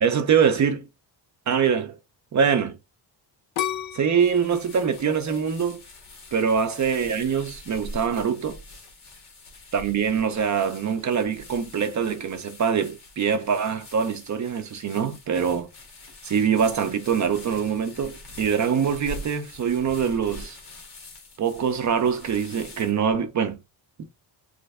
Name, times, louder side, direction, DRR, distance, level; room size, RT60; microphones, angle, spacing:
voice 1, 0.0-0.9 1.5-1.9 2.3-2.8 3.9-5.8 6.3-8.6 9.7-15.7 16.2-20.6 21.4-23.6, right 7 dB, 40° right, 0.5 m, -24 dB
sound 1, 3.6-6.5 7.0-7.5, left 10 dB, 85° left, 0.6 m, -33 dB
sound 2, 4.2-23.1, left 2 dB, 55° left, 1.3 m, -44 dB
3.2 x 2.5 x 3.3 m
wide cardioid pair, 165°, 46 cm